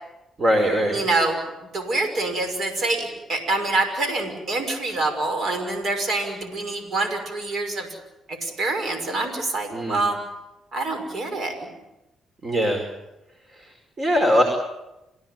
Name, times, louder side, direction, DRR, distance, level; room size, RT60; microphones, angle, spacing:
voice 1, 0.4-1.0 9.7-10.0 12.4-12.8 14.0-14.4, equal, 40° right, 4 dB, 5.0 m, -20 dB
voice 2, 0.9-1.4 1.7-7.9 8.3-10.2 10.7-11.7, right 2 dB, 60° right, 6 dB, 5.8 m, -26 dB
29.0 x 16.5 x 9.3 m, 0.94 s
supercardioid pair, 60°, 0 cm